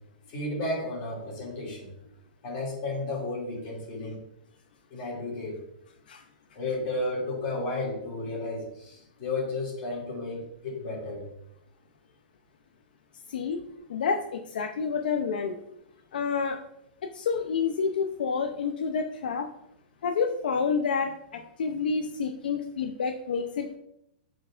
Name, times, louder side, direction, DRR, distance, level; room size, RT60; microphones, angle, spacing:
voice 1, 0.3-1.9 2.4-4.2 4.9-5.6 6.5-11.2, left 2 dB, 30° left, -3 dB, 2.5 m, -33 dB
voice 2, 13.3-13.6 13.9-15.6 16.1-16.6 17.1-19.5 20.0-23.8, left 5 dB, 75° left, 4 dB, 0.6 m, -29 dB
10.5 x 4.6 x 2.5 m, 0.77 s
hypercardioid pair, 170°, 5 cm